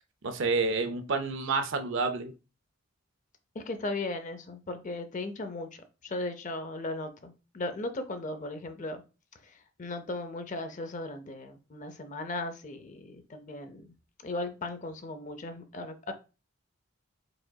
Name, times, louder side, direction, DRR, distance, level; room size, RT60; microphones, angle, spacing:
voice 1, 0.2-2.3, right 4 dB, 60° right, 0.5 m, -29 dB
voice 2, 3.5-5.7 6.0-9.0 9.4-13.9 14.2-16.1, left 2 dB, 35° left, 0.5 m, -37 dB
4.9 x 3.7 x 2.2 m
head